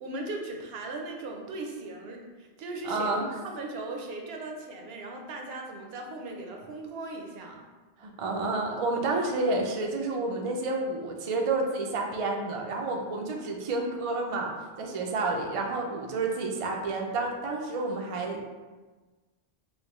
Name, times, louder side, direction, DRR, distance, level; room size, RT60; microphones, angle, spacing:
voice 1, 0.0-3.1 3.4-7.6, right 2 dB, 70° right, 2 dB, 0.8 m, -38 dB
voice 2, 2.8-3.3 8.0-14.5 14.8-18.5, right 3 dB, 55° right, 1 dB, 0.3 m, -30 dB
4.8 x 2.1 x 3.0 m, 1.3 s
omnidirectional pair, 1.1 m